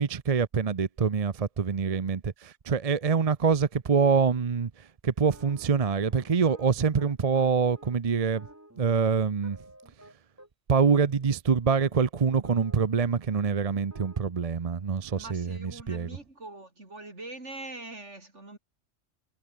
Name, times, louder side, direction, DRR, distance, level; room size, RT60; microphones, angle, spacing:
voice 1, 0.0-8.5 8.8-9.6 10.7-16.2, right 5 dB, 35° right, 0.7 m, -25 dB
sound 1, 5.2-10.5 11.0-11.2 11.7-13.1 13.3-13.4 13.7-14.3, right 1 dB, 10° right, 2.6 m, -53 dB
voice 2, 15.1-18.6, right 2 dB, 65° right, 5.0 m, -43 dB
omnidirectional pair, 1.3 m